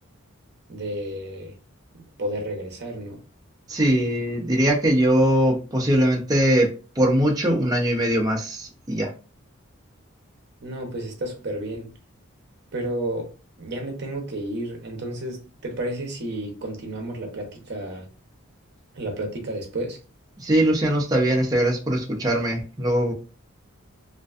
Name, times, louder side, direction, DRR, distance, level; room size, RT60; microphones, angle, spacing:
voice 1, 0.7-1.5 2.2-3.2 10.6-11.9 12.7-13.3 13.6-18.1 18.9-20.0, right 1 dB, 55° right, 0.7 m, -31 dB
voice 2, 3.7-6.7 7.0-9.1 20.4-23.1, right 1 dB, 20° right, 0.5 m, -21 dB
2.5 x 2.2 x 2.3 m
head